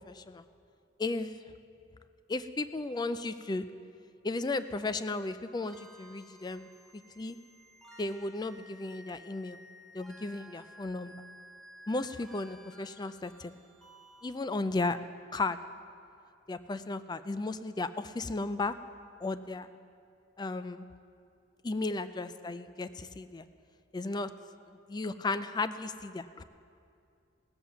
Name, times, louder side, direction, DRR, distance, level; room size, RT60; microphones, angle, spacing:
voice 1, 0.1-0.4 1.0-1.3 2.3-3.7 4.2-6.7 7.2-7.4 8.0-9.6 9.9-11.2 11.9-13.6 14.2-15.0 15.3-15.6 16.5-18.8 19.2-19.7 20.4-20.9 21.6-23.4 23.9-24.3 24.7-26.4, left 3 dB, 20° left, 12 dB, 0.4 m, -34 dB
sound 1, 5.6-14.4, equal, ahead, 0.9 m, -55 dB
17.0 x 7.5 x 7.0 m, 2.5 s
head